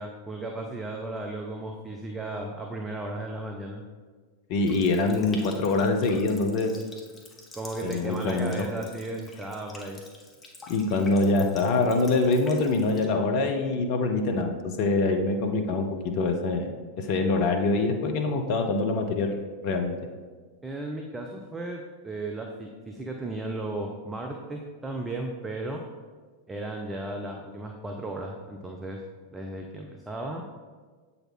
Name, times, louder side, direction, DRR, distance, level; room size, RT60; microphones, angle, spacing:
voice 1, 0.0-3.8 7.5-10.0 20.6-25.8 26.5-29.0 29.3-30.4, right 2 dB, 10° right, 2 dB, 0.6 m, -35 dB
voice 2, 4.5-6.8 7.8-8.7 10.7-16.7 17.0-20.0, left 3 dB, 45° left, 4 dB, 0.7 m, -25 dB
Water tap faucet, 4.6-13.1, left 2 dB, 20° left, 1.1 m, -48 dB
7.8 x 4.2 x 4.2 m, 1.4 s
figure-of-eight pair, 90°, 0 cm